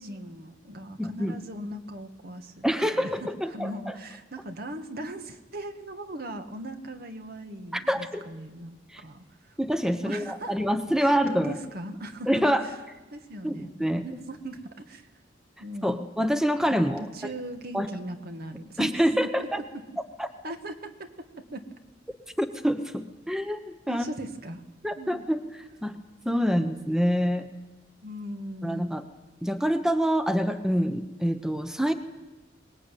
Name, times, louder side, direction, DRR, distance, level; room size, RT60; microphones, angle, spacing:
voice 1, 0.0-9.5 10.0-10.6 11.0-12.7 13.1-13.7 14.0-15.1 15.6-16.1 16.7-19.0 19.2-19.5 19.7-19.8 20.4-21.7 23.9-24.6 25.0-25.3 28.0-28.9, right 1 dB, 55° right, 7 dB, 1.9 m, -39 dB
voice 2, 1.0-1.3 2.6-3.9 7.7-8.2 8.9-9.0 9.6-11.5 12.3-12.6 13.4-14.0 15.8-17.1 17.7-17.9 18.8-19.6 20.2-20.3 22.4-24.0 24.8-25.4 25.8-26.0 26.2-27.5 28.6-29.0 29.4-31.9, equal, 5° right, 8 dB, 1.0 m, -26 dB
23.5 x 20.0 x 9.2 m, 1.1 s
head